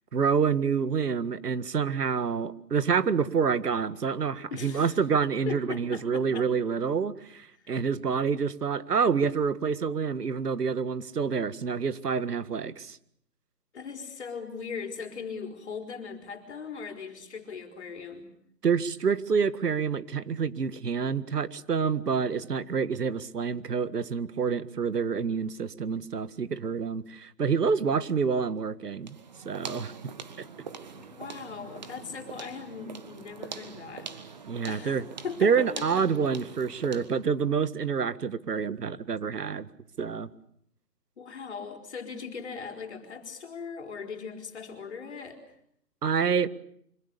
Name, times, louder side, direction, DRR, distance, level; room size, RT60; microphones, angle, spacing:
voice 1, 0.1-13.0 18.6-29.2 29.5-29.9 34.5-35.0 35.4-39.7 40.0-40.3 46.0-46.5, right 6 dB, 70° right, 14 dB, 1.8 m, -27 dB
voice 2, 4.5-5.0 5.5-6.5 7.6-7.7 13.7-18.3 31.0-34.1 34.7-36.1 41.2-45.4, left 5 dB, 40° left, 5 dB, 4.4 m, -39 dB
sound 1, 29.0-37.2, right 5 dB, 25° right, 1.6 m, -43 dB
26.0 x 25.0 x 6.9 m, 0.69 s
hypercardioid pair, 175°, 49 cm